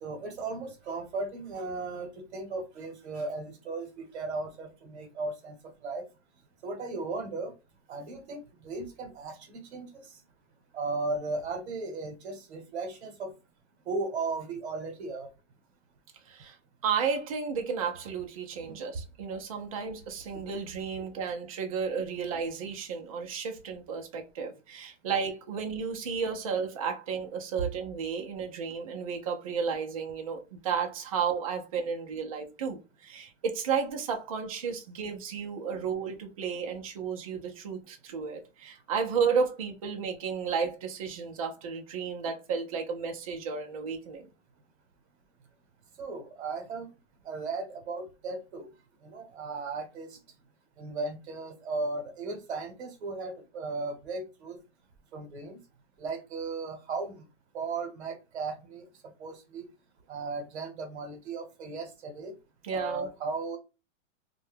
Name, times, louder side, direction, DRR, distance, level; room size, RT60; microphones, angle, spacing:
voice 1, 0.0-5.6 5.8-6.0 6.6-7.5 7.9-10.0 10.7-13.3 13.9-15.3 18.6-18.8 46.0-46.9 47.3-48.7 49.1-50.1 50.8-54.6 55.1-55.6 56.0-57.2 57.5-58.8 59.2-59.7 60.1-62.3 62.7-63.6, right 3 dB, 60° right, 0.9 m, -36 dB
voice 2, 16.3-16.6 16.8-44.3 62.6-63.1, right 6 dB, 30° right, 0.4 m, -33 dB
2.6 x 2.2 x 3.3 m
hypercardioid pair, 160°, 38 cm